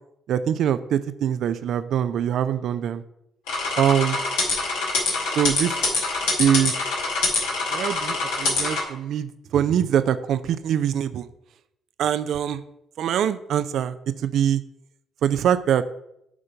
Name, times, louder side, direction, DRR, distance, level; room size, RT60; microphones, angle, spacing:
voice 1, 0.3-3.0 3.8-4.2 5.4-5.7 6.4-6.7 7.7-11.3 12.0-12.6 13.0-14.0 14.2-14.6 15.2-15.8, right 9 dB, 65° right, 13 dB, 0.4 m, -23 dB
sound 1, 3.5-8.8, left 3 dB, 80° left, 1.9 m, -25 dB
8.2 x 3.7 x 5.3 m, 0.79 s
hypercardioid pair, 55°, 0 cm